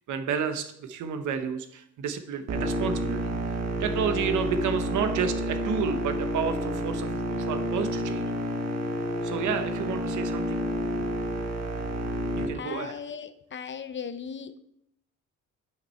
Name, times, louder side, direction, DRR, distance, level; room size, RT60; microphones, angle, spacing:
voice 1, 0.1-3.3 3.8-8.3 9.2-10.6 12.3-13.0, right 6 dB, 75° right, 8 dB, 1.0 m, -30 dB
sound 1, 2.5-12.5, equal, 60° right, 1.4 m, -29 dB
voice 2, 12.5-14.5, left 7 dB, 40° left, 12 dB, 0.7 m, -37 dB
9.5 x 5.9 x 4.4 m, 0.78 s
cardioid pair, 90°, 30 cm